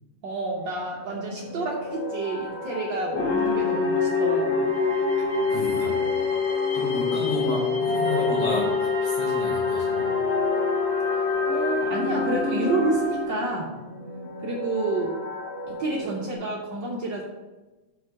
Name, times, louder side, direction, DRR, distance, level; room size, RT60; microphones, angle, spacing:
voice 1, 0.2-4.8 11.1-13.8 14.4-15.2 15.7-17.2, right 2 dB, 60° right, -2 dB, 1.6 m, -29 dB
sound 1, 0.6-16.3, left 1 dB, 20° left, 0.9 m, -38 dB
sound 2, 3.1-13.8, left 6 dB, 65° left, 1.3 m, -26 dB
sound 3, 3.1-13.2, equal, 45° left, 2.3 m, -30 dB
voice 2, 5.5-6.0 6.7-10.1, left 2 dB, 90° left, -5 dB, 2.3 m, -31 dB
5.9 x 5.0 x 6.4 m, 1.1 s
omnidirectional pair, 2.4 m